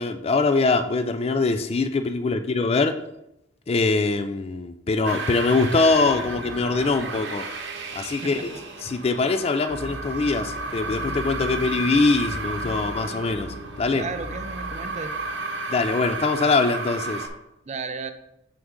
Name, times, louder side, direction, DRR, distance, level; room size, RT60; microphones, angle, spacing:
voice 1, 0.0-2.9 3.7-7.4 7.9-8.5 8.8-14.0 15.7-17.3, left 3 dB, 30° left, 9 dB, 0.4 m, -23 dB
sound 1, 5.0-17.3, right 3 dB, 65° right, 1.0 m, -33 dB
sound 2, 9.7-16.4, left 1 dB, 75° left, 0.7 m, -39 dB
voice 2, 13.9-15.1 17.7-18.1, right 4 dB, 35° right, 9 dB, 0.5 m, -33 dB
6.2 x 6.1 x 3.7 m, 0.84 s
head